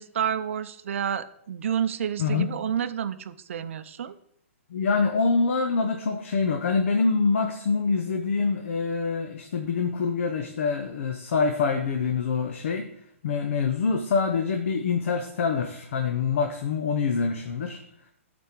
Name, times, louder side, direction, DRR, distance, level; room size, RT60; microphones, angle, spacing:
voice 1, 0.0-4.1, right 8 dB, 65° right, 13 dB, 0.6 m, -29 dB
voice 2, 2.2-2.5 4.7-12.9 13.2-17.8, left 5 dB, 60° left, 4 dB, 0.9 m, -25 dB
12.0 x 4.4 x 4.5 m, 0.69 s
hypercardioid pair, 160°, 8 cm